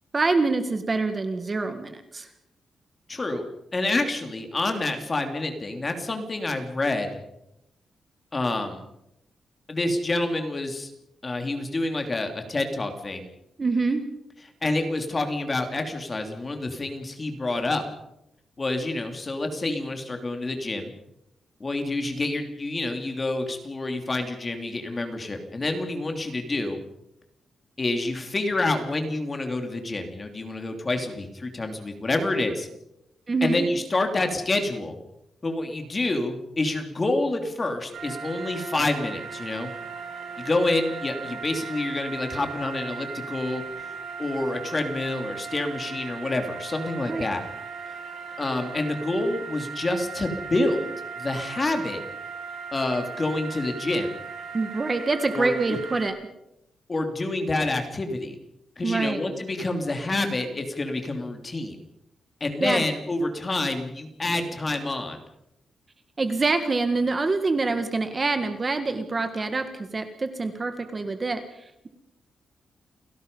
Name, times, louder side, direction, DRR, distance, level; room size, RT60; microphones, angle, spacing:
voice 1, 0.1-2.3 13.6-14.0 33.3-33.7 47.1-47.3 54.5-56.1 58.8-59.2 62.6-62.8 66.2-71.9, right 3 dB, 25° right, 8 dB, 1.7 m, -26 dB
voice 2, 3.1-3.4 3.7-7.1 8.3-8.8 9.7-10.9 11.2-13.3 14.6-17.8 18.6-20.9 21.6-26.8 27.8-32.7 33.4-35.0 35.4-39.7 40.4-47.4 48.4-50.9 51.2-52.0 52.7-54.1 55.3-55.8 56.9-58.3 58.8-61.8 62.4-65.2, left 2 dB, 25° left, 5 dB, 2.9 m, -28 dB
sound 1, 37.9-56.1, right 5 dB, 85° right, 6.8 m, -37 dB
29.5 x 17.5 x 5.5 m, 0.83 s
wide cardioid pair, 160°, 0 cm